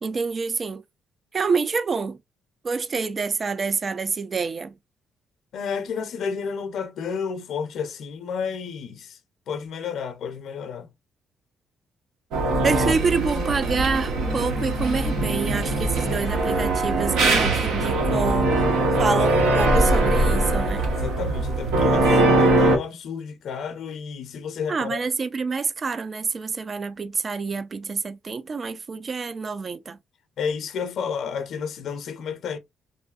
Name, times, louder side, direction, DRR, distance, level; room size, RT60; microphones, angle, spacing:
voice 1, 0.0-0.8 1.3-2.2 2.6-4.7 12.6-18.5 19.0-20.8 24.7-30.0, right 4 dB, 40° right, 0.3 m, -27 dB
voice 2, 5.5-9.2 9.5-10.9 20.9-25.0 30.4-32.6, left 6 dB, 70° left, 0.5 m, -31 dB
sound 1, 12.3-22.8, right 2 dB, 90° right, 0.9 m, -21 dB
3.0 x 2.6 x 2.3 m
cardioid pair, 90°, 0 cm